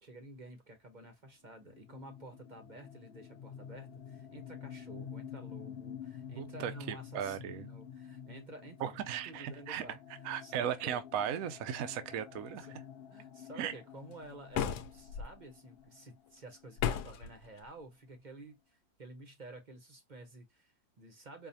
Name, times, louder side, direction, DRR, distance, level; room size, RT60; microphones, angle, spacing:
voice 1, 0.0-8.9 9.2-10.0 10.4-11.0 12.6-12.8 13.1-21.5, right 2 dB, 35° right, 0.8 m, -51 dB
sound 1, 1.6-17.2, left 8 dB, 70° left, 0.6 m, -49 dB
voice 2, 6.4-7.7 8.8-9.8 10.2-12.7 13.6-13.7, right 9 dB, 70° right, 1.0 m, -37 dB
sound 2, 14.5-15.3 16.8-17.3, left 9 dB, 85° left, 1.2 m, -33 dB
4.8 x 2.4 x 2.6 m
omnidirectional pair, 1.7 m